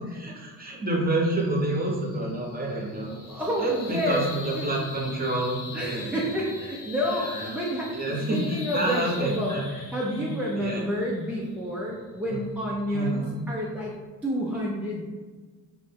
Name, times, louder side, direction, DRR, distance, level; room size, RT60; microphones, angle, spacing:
voice 1, 0.1-3.2 3.6-6.2 7.0-7.6 7.9-9.6 10.2-10.3 10.6-10.8 12.3-12.4 12.9-13.3, right 1 dB, 20° right, -2 dB, 0.8 m, -28 dB
sound 1, 1.3-13.9, left 3 dB, 55° left, 0.9 m, -43 dB
voice 2, 3.3-4.2 4.5-4.7 5.7-13.9 14.2-15.1, equal, 5° right, -5 dB, 0.4 m, -29 dB
2.6 x 2.1 x 3.3 m, 1.4 s
supercardioid pair, 70°, 40 cm